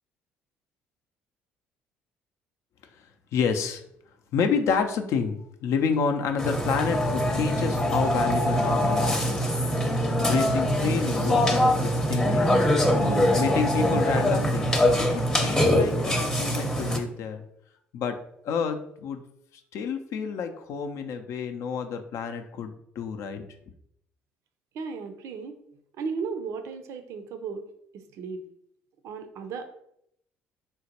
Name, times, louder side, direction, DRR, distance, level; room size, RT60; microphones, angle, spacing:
voice 1, 3.3-3.8 4.3-9.5 10.2-12.6 13.3-17.4 17.9-18.2 18.4-19.2 19.7-23.5, left 6 dB, 60° left, 6 dB, 0.4 m, -29 dB
Burping eructation, 6.4-17.0, equal, 10° left, 0.7 m, -23 dB
voice 2, 24.7-25.6 26.0-27.6 27.9-28.4 29.0-29.7, right 5 dB, 60° right, 7 dB, 0.5 m, -35 dB
3.8 x 2.1 x 2.8 m, 0.72 s
hypercardioid pair, 60°, 6 cm